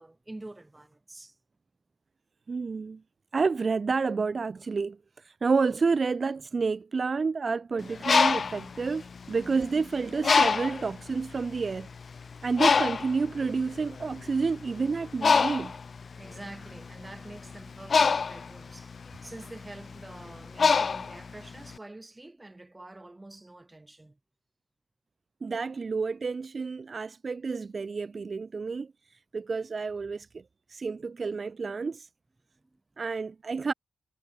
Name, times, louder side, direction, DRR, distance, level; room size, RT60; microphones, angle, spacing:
voice 1, 0.0-1.4 16.2-24.2 32.6-32.8, right 2 dB, 15° right, 3.7 m, -46 dB
voice 2, 2.5-3.0 3.3-11.9 12.4-15.7 25.4-30.4 30.7-32.1 33.0-33.7, right 4 dB, 35° right, 1.3 m, -29 dB
Bird, 7.8-9.7 10.2-10.9 11.6-11.7 12.0-21.7, left 5 dB, 40° left, 0.7 m, -25 dB
cardioid pair, 105°, 0 cm